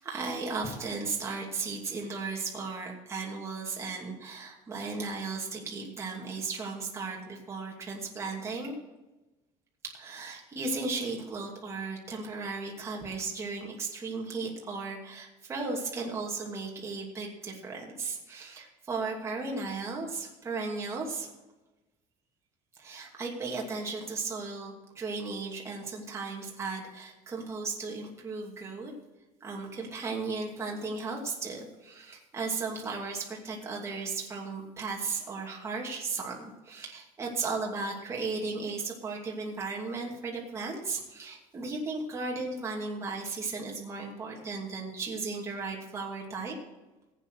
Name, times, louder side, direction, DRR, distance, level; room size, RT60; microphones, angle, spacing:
voice 1, 0.0-8.7 9.8-21.3 22.8-28.9 29.4-46.5, right 4 dB, 20° right, -2 dB, 2.6 m, -35 dB
15.0 x 9.1 x 4.8 m, 1.0 s
cardioid pair, 165°, 13 cm